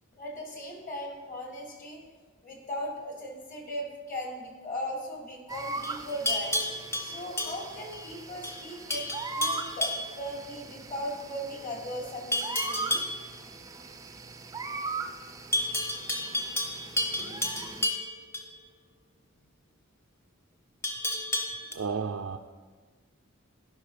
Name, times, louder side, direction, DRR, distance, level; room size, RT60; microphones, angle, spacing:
voice 1, 0.2-2.0 2.4-6.6 7.0-13.0, equal, 40° left, 0 dB, 2.0 m, -38 dB
sound 1, 5.5-17.9, right 3 dB, 15° right, 0.4 m, -40 dB
Livestock farm animals working animals, 5.8-8.1 8.4-8.6 8.9-10.1 12.3-13.2 15.5-18.5 20.8-21.7, left 1 dB, 15° left, 0.8 m, -31 dB
voice 2, 21.7-22.4, right 5 dB, 90° right, 3 dB, 0.4 m, -32 dB
12.0 x 5.5 x 5.0 m, 1.4 s
head